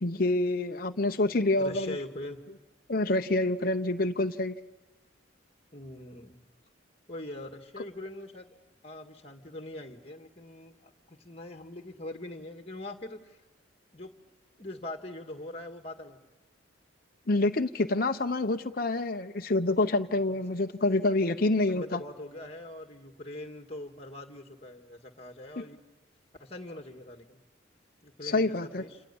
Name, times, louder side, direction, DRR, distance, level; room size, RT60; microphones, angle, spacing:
voice 1, 0.0-2.0 2.9-4.6 17.3-22.0 25.6-25.7 28.2-28.8, left 2 dB, 45° left, 6 dB, 0.8 m, -27 dB
voice 2, 1.6-2.4 5.7-6.4 7.1-8.5 8.8-13.4 13.9-14.3 14.6-16.2 21.7-25.8 26.4-27.4 28.0-29.0, left 1 dB, 30° left, 5 dB, 1.9 m, -42 dB
28.5 x 28.5 x 7.1 m, 1.2 s
head